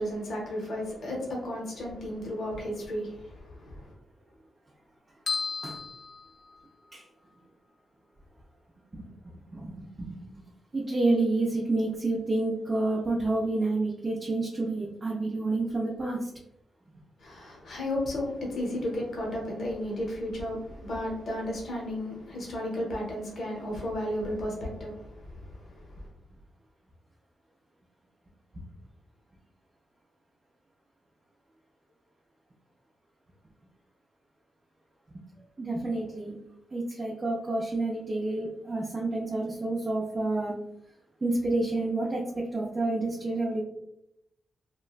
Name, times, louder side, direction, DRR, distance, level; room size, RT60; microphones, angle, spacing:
voice 1, 0.0-3.9 17.2-26.0, left 1 dB, 60° left, -2 dB, 0.8 m, -34 dB
sound 1, 5.3-7.0, left 4 dB, 40° left, 0.4 m, -35 dB
voice 2, 9.5-10.4 10.7-16.3 35.6-36.3 36.7-40.5 41.2-42.2 42.5-43.6, right 2 dB, 25° right, -3 dB, 0.4 m, -29 dB
2.9 x 2.2 x 2.4 m, 0.81 s
wide cardioid pair, 145°, 0 cm